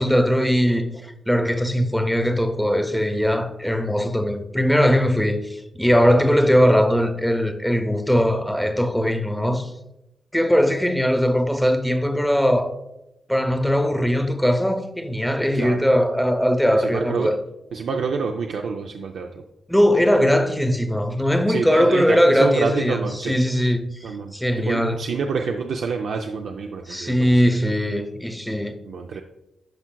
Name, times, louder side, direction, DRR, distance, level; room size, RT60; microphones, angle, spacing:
voice 1, 0.0-9.7 10.3-12.8 13.3-17.4 19.7-25.0 26.9-28.8, equal, ahead, 0.7 m, -20 dB
voice 2, 15.5-15.8 16.7-17.3 17.7-19.4 21.5-23.4 24.0-27.4 28.8-29.2, right 5 dB, 85° right, 0.4 m, -27 dB
11.5 x 4.6 x 2.3 m
cardioid pair, 90°, 0 cm